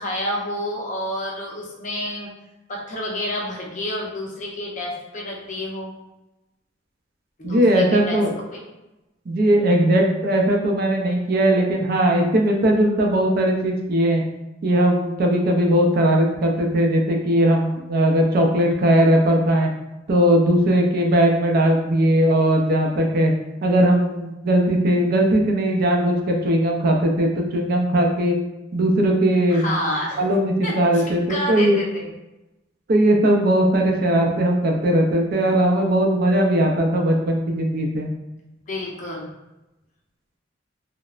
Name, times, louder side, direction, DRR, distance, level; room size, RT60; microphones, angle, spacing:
voice 1, 0.0-2.3 2.7-5.9 7.4-8.2 8.5-8.6 29.5-30.2 30.6-32.1 38.7-39.3, left 1 dB, 40° left, -2 dB, 0.6 m, -29 dB
voice 2, 7.4-8.4 9.3-14.2 14.6-19.7 20.1-23.3 23.6-28.4 28.7-29.7 30.2-31.8 32.9-38.1, right 1 dB, 50° right, 1 dB, 0.4 m, -19 dB
3.0 x 2.0 x 2.3 m, 0.99 s
head